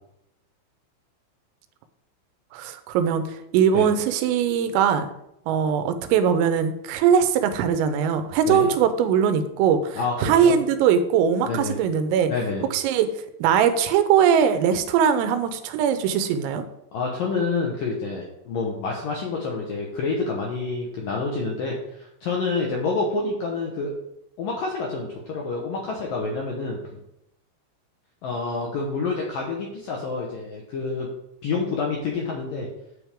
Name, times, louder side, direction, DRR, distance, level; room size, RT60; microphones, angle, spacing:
voice 1, 2.5-3.2 3.5-5.1 5.5-12.3 12.7-13.1 13.4-16.6, right 8 dB, 85° right, 9 dB, 3.5 m, -21 dB
voice 2, 10.0-10.6 11.4-11.8 12.3-12.7 16.9-23.9 24.4-26.8 28.2-31.1 31.4-32.7, left 4 dB, 70° left, -1 dB, 2.1 m, -28 dB
12.5 x 8.0 x 3.7 m, 0.82 s
omnidirectional pair, 5.8 m